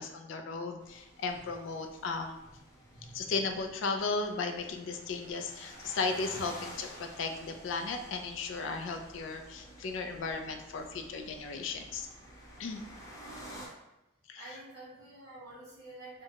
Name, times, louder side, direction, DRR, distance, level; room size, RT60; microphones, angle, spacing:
voice 1, 0.0-2.4 3.1-12.1 12.6-12.8 14.3-14.6, left 4 dB, 65° left, 5 dB, 0.3 m, -35 dB
sound 1, 0.8-13.7, equal, 15° left, 0.5 m, -51 dB
voice 2, 2.9-3.2 13.2-13.7 14.3-16.2, right 2 dB, 55° right, -9 dB, 0.9 m, -49 dB
2.8 x 2.2 x 2.7 m, 0.94 s
head